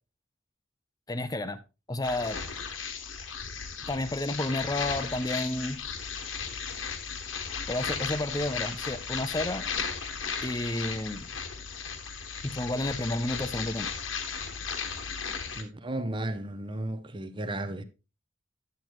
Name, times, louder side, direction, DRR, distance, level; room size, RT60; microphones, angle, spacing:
voice 1, 1.1-1.6 1.9-2.4 3.9-5.8 7.7-9.7 10.4-11.3 12.4-13.9, left 1 dB, 20° left, 0.5 m, -31 dB
sound 1, 2.0-15.6, left 6 dB, 90° left, 1.3 m, -35 dB
voice 2, 15.5-17.8, right 1 dB, 25° right, 0.7 m, -34 dB
10.5 x 7.7 x 3.0 m
head